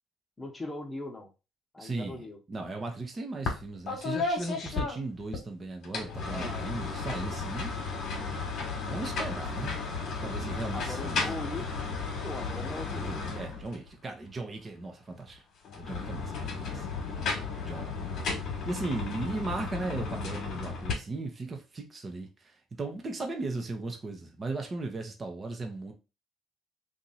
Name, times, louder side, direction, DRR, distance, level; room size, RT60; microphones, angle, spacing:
voice 1, 0.4-1.3 1.7-2.4 6.3-6.8 10.7-12.0 12.2-13.2, left 2 dB, 20° left, 1.0 m, -40 dB
voice 2, 1.8-2.2 2.5-7.7 8.9-9.8 10.2-11.2 12.9-15.4 15.7-16.9 17.6-17.9 18.7-25.9, right 3 dB, 35° right, 0.9 m, -37 dB
sound 1, 3.5-3.6 3.9-5.4 5.8-13.9 15.6-20.9, left 4 dB, 65° left, 1.2 m, -34 dB
2.9 x 2.5 x 4.0 m
supercardioid pair, 75°, 0 cm